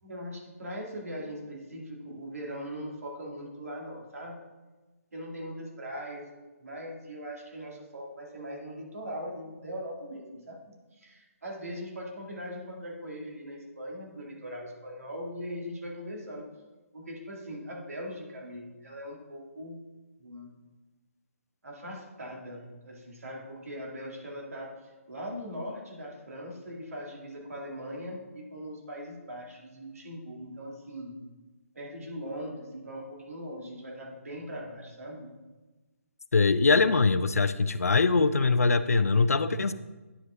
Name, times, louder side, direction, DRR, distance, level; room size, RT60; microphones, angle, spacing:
voice 1, 0.0-4.4 5.1-6.2 6.6-16.5 16.9-19.8 20.2-20.5 21.6-24.8 25.1-31.2 31.7-35.3, equal, 70° right, -2 dB, 2.5 m, -40 dB
voice 2, 36.3-39.7, left 4 dB, 75° left, 13 dB, 0.5 m, -23 dB
9.6 x 5.2 x 3.8 m, 1.2 s
figure-of-eight pair, 140°, 8 cm